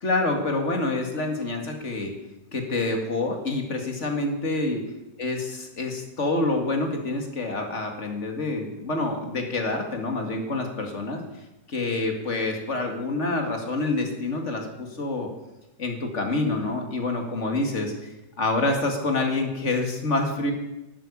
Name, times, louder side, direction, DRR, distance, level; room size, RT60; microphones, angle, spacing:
voice 1, 0.0-2.1 2.5-4.8 5.2-11.2 11.7-15.3 15.8-20.5, left 2 dB, 40° left, 3 dB, 2.4 m, -27 dB
12.0 x 9.1 x 8.5 m, 0.95 s
omnidirectional pair, 1.9 m